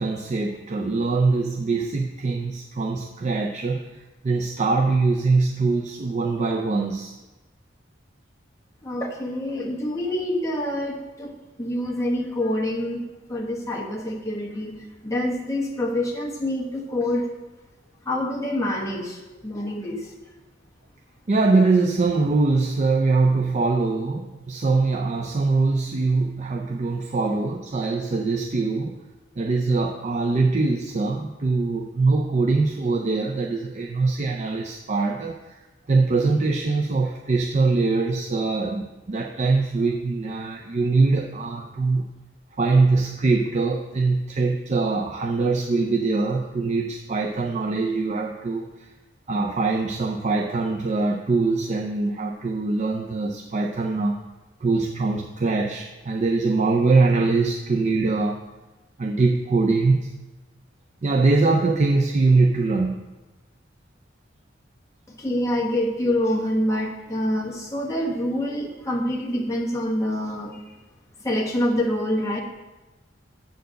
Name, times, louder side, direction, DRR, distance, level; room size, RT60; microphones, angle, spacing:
voice 1, 0.0-7.1 21.3-29.0 29.4-42.1 42.6-48.9 49.3-54.2 54.6-58.4 59.0-60.2 61.0-63.0, right 3 dB, 40° right, 1 dB, 0.5 m, -23 dB
voice 2, 8.8-14.7 15.0-17.3 18.0-20.1 65.1-70.6 71.2-72.4, left 1 dB, 15° left, -2 dB, 1.2 m, -26 dB
7.9 x 4.5 x 6.4 m, 1.1 s
head